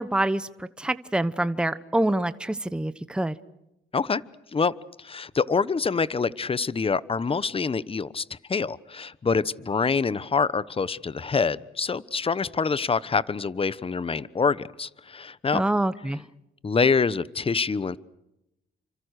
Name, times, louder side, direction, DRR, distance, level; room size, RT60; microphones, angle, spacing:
voice 1, 0.0-3.4 15.5-16.2, right 1 dB, 5° right, 1.0 m, -26 dB
voice 2, 4.5-15.6 16.6-18.0, left 5 dB, 30° left, 1.1 m, -26 dB
30.0 x 26.5 x 6.6 m
cardioid pair, 90°, 20 cm